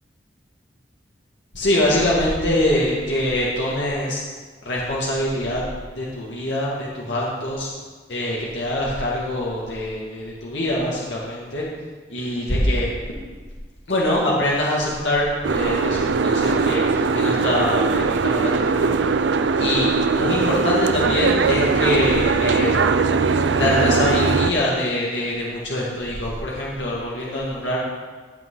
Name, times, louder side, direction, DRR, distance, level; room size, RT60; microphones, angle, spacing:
voice 1, 1.5-4.2 4.6-5.7 6.0-7.7 8.1-11.6 12.1-12.9 13.9-19.0 19.6-22.8 23.5-27.8, left 1 dB, 90° left, -5 dB, 2.2 m, -24 dB
Boat Water vehicle, 15.4-24.5, right 4 dB, 80° right, 0.5 m, -20 dB
16.5 x 8.4 x 3.9 m, 1.4 s
head